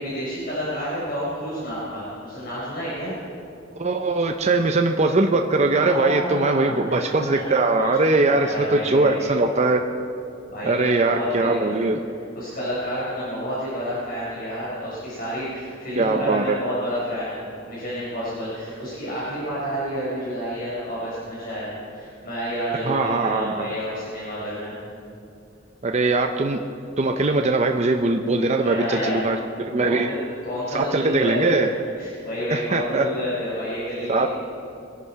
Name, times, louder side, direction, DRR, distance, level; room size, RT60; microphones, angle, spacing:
voice 1, 0.0-3.1 5.7-7.4 7.8-8.0 8.3-9.3 10.5-11.7 12.3-24.7 28.6-29.2 29.8-30.2 30.4-31.3 31.6-34.3, equal, 50° left, -8 dB, 4.3 m, -30 dB
voice 2, 3.8-9.8 10.6-12.0 16.0-16.6 22.8-23.7 25.8-26.6 27.0-30.1 30.7-31.7 32.5-33.1 34.1-34.3, right 2 dB, 35° right, 4 dB, 0.6 m, -21 dB
22.5 x 11.5 x 4.7 m, 2.5 s
head